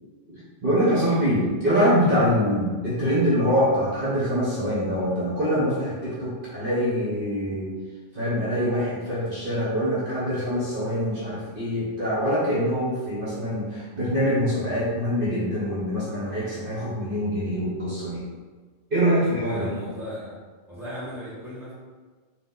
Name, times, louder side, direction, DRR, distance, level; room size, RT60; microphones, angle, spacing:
voice 1, 0.3-7.7 8.1-18.2 18.9-19.7, equal, 50° right, -9 dB, 1.2 m, -24 dB
voice 2, 19.4-20.4 20.7-21.7, equal, ahead, -11 dB, 1.3 m, -36 dB
4.0 x 2.6 x 3.7 m, 1.4 s
omnidirectional pair, 1.3 m